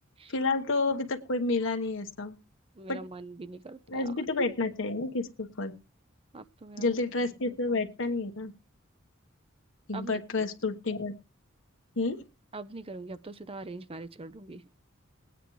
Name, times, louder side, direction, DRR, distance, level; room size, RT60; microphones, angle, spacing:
voice 1, 0.3-2.3 2.9-3.0 3.9-5.7 6.8-8.5 9.9-11.1 12.0-12.2, left 3 dB, 65° left, 1.3 m, -30 dB
voice 2, 2.7-4.1 6.3-6.9 7.2-7.8 9.9-10.5 12.5-14.6, right 2 dB, 25° right, 0.6 m, -43 dB
20.5 x 9.2 x 3.2 m
head